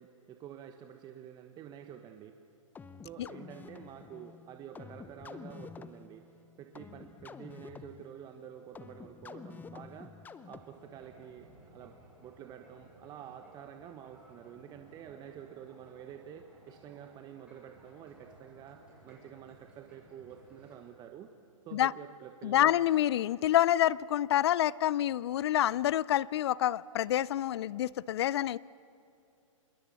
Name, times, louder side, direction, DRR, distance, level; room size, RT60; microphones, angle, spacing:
voice 1, 0.0-2.3 3.0-6.2 6.6-10.1 10.5-11.9 12.2-21.3 21.6-22.7, right 9 dB, 25° right, 1.2 m, -49 dB
sound 1, 2.7-11.0, left 5 dB, 10° left, 0.7 m, -49 dB
sound 2, 10.5-20.8, right 1 dB, 5° right, 8.0 m, -59 dB
voice 2, 22.4-28.6, left 12 dB, 50° left, 0.4 m, -27 dB
26.0 x 22.0 x 7.0 m
hypercardioid pair, 125°, 17 cm